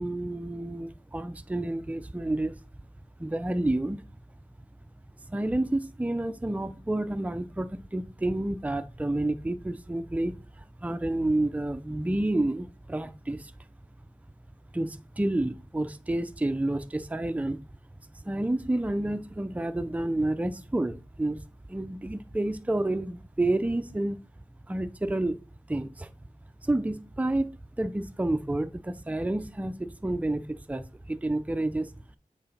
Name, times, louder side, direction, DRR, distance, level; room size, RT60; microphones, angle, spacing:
voice 1, 0.0-2.6 3.2-4.0 5.3-13.5 14.7-17.6 18.2-21.4 21.7-24.2 24.7-25.4 25.7-26.1 26.6-27.5 27.8-31.9, right 1 dB, 10° right, 0.5 m, -29 dB
7.7 x 3.7 x 4.1 m
wide cardioid pair, 70°, 14 cm